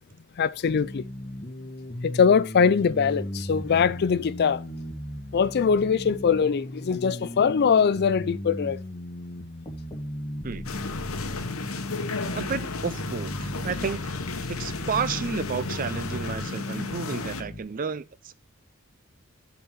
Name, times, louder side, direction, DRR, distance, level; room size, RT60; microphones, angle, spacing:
voice 1, 0.4-1.0 2.0-4.6 5.3-8.8, left 6 dB, 50° left, 0.4 m, -22 dB
sound 1, 0.7-17.6, equal, 25° left, 1.7 m, -37 dB
sound 2, 10.6-17.4, left 3 dB, 75° left, 1.0 m, -34 dB
voice 2, 12.3-14.1 14.5-18.3, right 6 dB, 40° right, 0.5 m, -31 dB
6.8 x 4.8 x 5.6 m
head